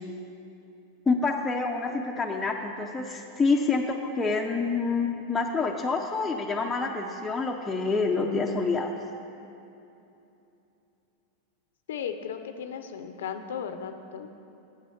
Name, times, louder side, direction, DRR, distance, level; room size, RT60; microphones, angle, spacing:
voice 1, 1.1-8.9, left 4 dB, 10° left, -1 dB, 0.6 m, -27 dB
voice 2, 11.9-14.3, left 7 dB, 85° left, 8 dB, 0.6 m, -36 dB
8.6 x 7.3 x 5.6 m, 2.8 s
supercardioid pair, 130°, 0 cm